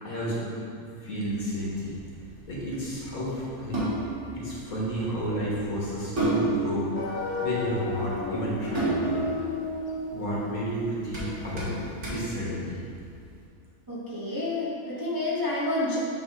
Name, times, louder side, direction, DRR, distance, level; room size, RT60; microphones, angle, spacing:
voice 1, 0.0-2.0 2.5-3.8 4.3-9.2 10.1-12.8, equal, 75° left, -6 dB, 1.9 m, -32 dB
sound 1, 1.2-13.3, right 2 dB, 55° right, 1.7 m, -33 dB
sound 2, 6.9-11.8, left 2 dB, 55° left, 1.0 m, -33 dB
voice 2, 13.9-16.0, left 2 dB, 20° right, -7 dB, 0.7 m, -29 dB
9.2 x 3.5 x 3.7 m, 2.4 s
omnidirectional pair, 1.5 m